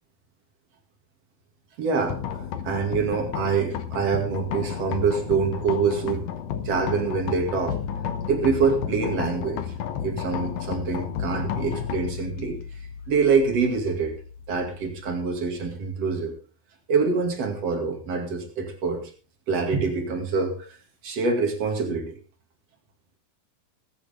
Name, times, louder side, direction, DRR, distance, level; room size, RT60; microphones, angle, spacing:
voice 1, 1.8-2.2 2.6-6.3 6.6-7.8 8.3-9.6 10.0-12.6 13.1-14.1 14.5-16.4 16.9-19.1 19.5-20.8 21.0-22.2, right 5 dB, 45° right, 4 dB, 3.1 m, -25 dB
sound 1, 2.1-15.9, left 8 dB, 70° left, 1.8 m, -33 dB
20.5 x 9.0 x 3.6 m, 0.36 s
omnidirectional pair, 4.2 m